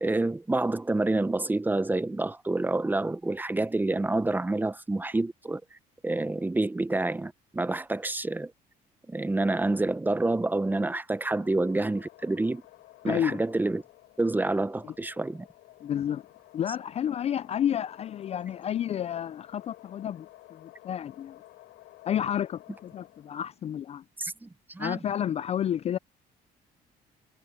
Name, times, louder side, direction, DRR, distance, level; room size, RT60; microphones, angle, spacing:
voice 1, 0.0-5.6 6.0-8.5 9.1-12.6 13.0-13.8 14.2-15.5 24.2-25.0, right 2 dB, 10° right, 0.7 m, -28 dB
sound 1, 11.1-23.6, left 17 dB, 85° left, 6.0 m, -53 dB
voice 2, 13.0-13.4 15.8-16.2 16.5-21.4 22.1-24.0 24.8-26.0, left 10 dB, 40° left, 0.3 m, -30 dB
cardioid pair, 110°, 17 cm